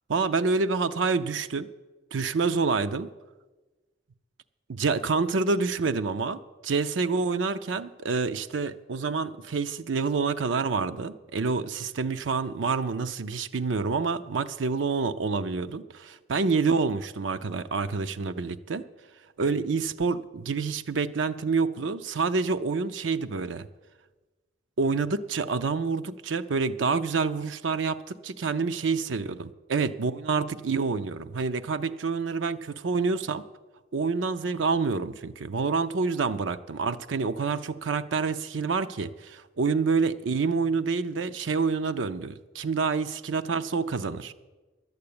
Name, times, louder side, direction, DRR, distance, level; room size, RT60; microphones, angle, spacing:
voice 1, 0.1-1.7 2.1-3.1 4.7-18.8 19.4-23.7 24.8-33.4 33.9-44.3, right 4 dB, 90° right, 10 dB, 0.6 m, -27 dB
11.5 x 8.2 x 8.6 m, 1.2 s
head